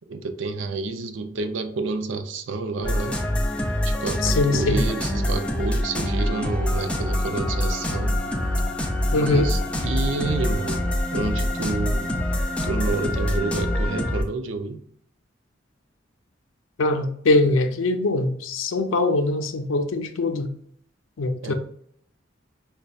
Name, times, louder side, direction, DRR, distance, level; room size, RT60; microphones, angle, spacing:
voice 1, 0.1-3.2 3.8-8.2 9.1-10.8 11.1-12.1 12.6-14.8 21.4-21.5, right 3 dB, 80° right, 8 dB, 0.5 m, -29 dB
sound 1, 2.8-14.2, left 1 dB, 5° left, 0.4 m, -25 dB
voice 2, 4.2-4.8 9.1-9.5 16.8-20.5 21.2-21.5, left 2 dB, 90° left, 7 dB, 0.5 m, -22 dB
5.1 x 2.2 x 2.3 m, 0.65 s
head